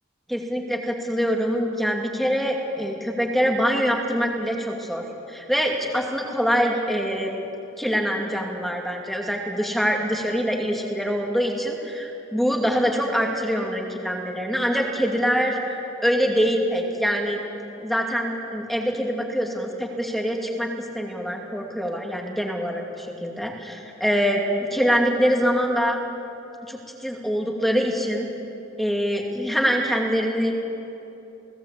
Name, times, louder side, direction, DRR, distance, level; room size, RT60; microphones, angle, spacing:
voice 1, 0.3-7.3 7.8-17.4 17.8-24.4 24.7-26.0 26.7-28.3 28.8-30.5, equal, ahead, 0 dB, 2.5 m, -24 dB
30.0 x 18.0 x 8.4 m, 2.9 s
head